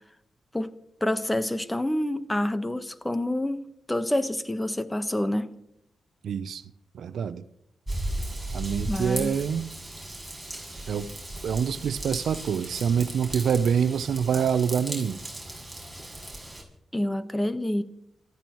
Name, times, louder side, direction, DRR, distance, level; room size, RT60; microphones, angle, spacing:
voice 1, 1.0-5.5 8.9-9.4 16.9-17.8, left 1 dB, 15° left, 1.2 m, -27 dB
voice 2, 6.2-6.6 6.9-7.4 8.5-9.7 10.9-11.1 11.4-15.2, right 7 dB, 80° right, 0.7 m, -26 dB
Raindrop / Vehicle horn car horn honking / Trickle dribble, 7.9-16.6, right 1 dB, 5° right, 6.8 m, -36 dB
29.0 x 14.5 x 3.1 m
cardioid pair, 60°, 0 cm